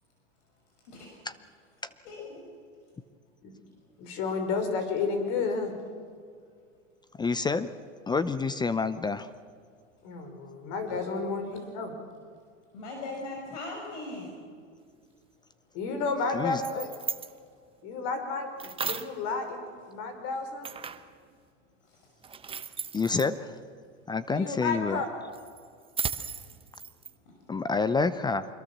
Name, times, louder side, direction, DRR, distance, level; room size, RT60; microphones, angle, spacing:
voice 1, 2.1-2.4 10.9-11.0 12.7-14.3, left 2 dB, 65° left, 0 dB, 5.9 m, -39 dB
voice 2, 4.0-5.7 10.0-11.9 15.7-16.9 17.8-18.5 18.8-19.6 19.9-20.7 24.3-25.1, left 4 dB, 50° left, 6 dB, 5.4 m, -31 dB
voice 3, 7.2-7.7 8.1-9.3 16.3-16.6 22.9-23.6 24.1-25.0 27.5-28.5, left 4 dB, 10° left, 13 dB, 0.6 m, -28 dB
sound 1, 16.4-17.3 18.6-19.2 20.6-21.1 22.2-23.3 25.3-27.1, right 6 dB, 15° right, 1.0 m, -36 dB
25.5 x 22.0 x 7.4 m, 2.1 s
hypercardioid pair, 115°, 38 cm